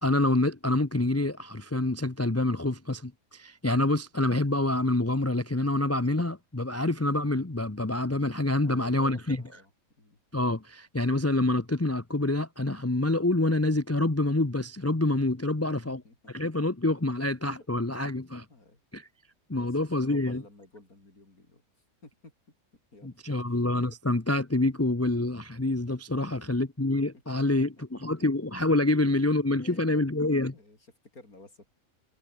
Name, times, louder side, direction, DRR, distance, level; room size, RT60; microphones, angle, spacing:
voice 1, 0.0-9.4 10.3-16.0 16.3-18.4 18.9-19.1 19.5-20.4 23.0-30.5, left 2 dB, 10° left, 0.9 m, -27 dB
voice 2, 8.6-9.7 10.0-10.2 15.5-16.5 17.6-17.7 18.5-18.8 19.5-19.7 20.0-21.6 22.0-22.3 22.9-23.5 26.2-26.6 27.3-27.6 28.0-28.1 29.6-30.0 30.5-30.8 31.1-31.7, left 2 dB, 80° left, 6.0 m, -52 dB
omnidirectional pair, 1.5 m